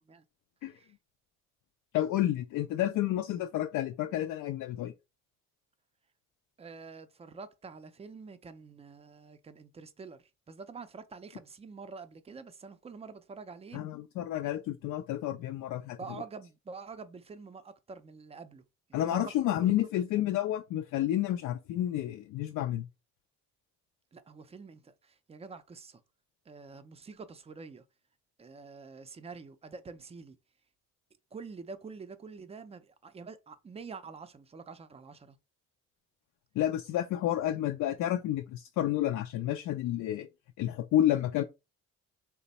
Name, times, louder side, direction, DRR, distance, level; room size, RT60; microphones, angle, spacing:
voice 1, 1.9-4.9 13.7-16.0 18.9-22.9 36.6-40.3 40.6-41.4, left 12 dB, 65° left, 0.4 m, -30 dB
voice 2, 6.6-14.0 16.0-18.6 18.9-19.3 19.6-19.9 24.1-26.0 26.5-27.8 28.4-30.4 31.3-35.4, right 4 dB, 20° right, 0.5 m, -47 dB
3.2 x 2.1 x 4.0 m
cardioid pair, 85°, 33 cm